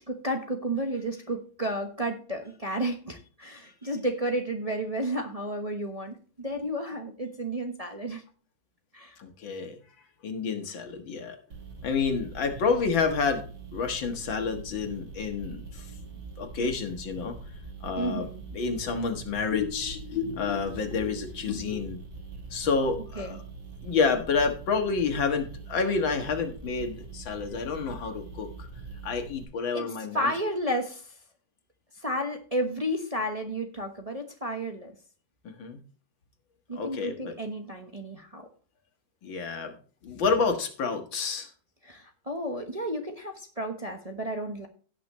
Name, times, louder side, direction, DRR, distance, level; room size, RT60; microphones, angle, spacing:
voice 1, 0.0-8.2 8.9-9.2 18.0-18.4 23.2-23.4 29.7-31.2 31.9-34.9 36.7-38.5 41.8-44.7, right 1 dB, 25° right, 4 dB, 0.9 m, -32 dB
voice 2, 9.2-9.8 10.2-11.4 11.8-15.9 16.4-17.4 17.8-18.3 18.5-22.0 22.5-23.4 23.8-28.7 29.0-30.3 35.4-35.8 36.8-37.3 39.2-39.7 40.0-41.5, left 5 dB, 85° left, 5 dB, 2.3 m, -29 dB
sound 1, 11.5-29.4, right 4 dB, 65° right, 3.6 m, -43 dB
17.0 x 6.1 x 3.1 m, 0.40 s
omnidirectional pair, 2.1 m